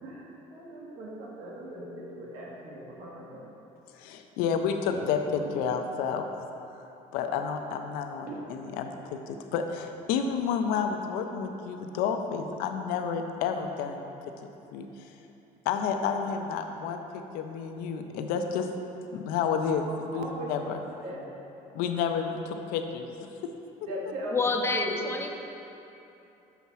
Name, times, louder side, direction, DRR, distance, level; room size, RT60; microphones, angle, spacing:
voice 1, 0.5-3.4 4.9-5.5 20.1-20.5 21.0-21.2 23.9-24.3 24.7-25.0, right 1 dB, 75° right, -4 dB, 1.5 m, -39 dB
voice 2, 4.0-6.3 7.1-14.2 14.4-14.9 15.7-18.7 19.1-20.8 21.7-23.1, left 6 dB, 85° left, 5 dB, 0.5 m, -30 dB
voice 3, 24.3-25.3, left 3 dB, 15° left, 3 dB, 0.4 m, -28 dB
7.0 x 4.1 x 4.6 m, 2.9 s
cardioid pair, 135°, 15 cm